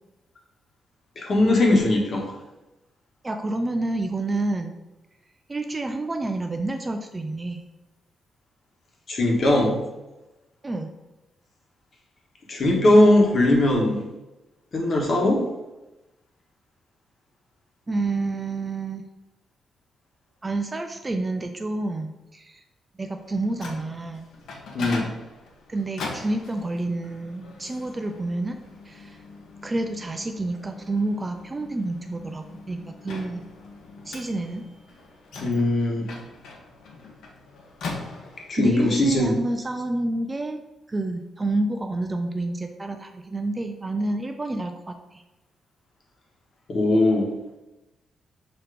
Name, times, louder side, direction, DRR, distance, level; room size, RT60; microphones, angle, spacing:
voice 1, 1.2-2.3 9.1-9.8 12.5-14.0 14.7-15.4 24.7-25.1 35.4-36.1 38.5-39.4 46.7-47.3, left 1 dB, 40° left, 0 dB, 1.3 m, -20 dB
voice 2, 3.2-4.8 5.5-7.6 10.6-11.0 17.9-19.0 20.4-22.6 23.0-24.3 25.7-28.6 28.8-29.2 29.6-33.4 34.1-34.6 38.6-40.6 40.9-45.2, right 2 dB, 20° right, 5 dB, 0.4 m, -29 dB
Microwave oven, 23.2-38.7, left 3 dB, 75° left, 1.1 m, -41 dB
6.8 x 3.0 x 4.9 m, 1.0 s
wide cardioid pair, 160°, 0 cm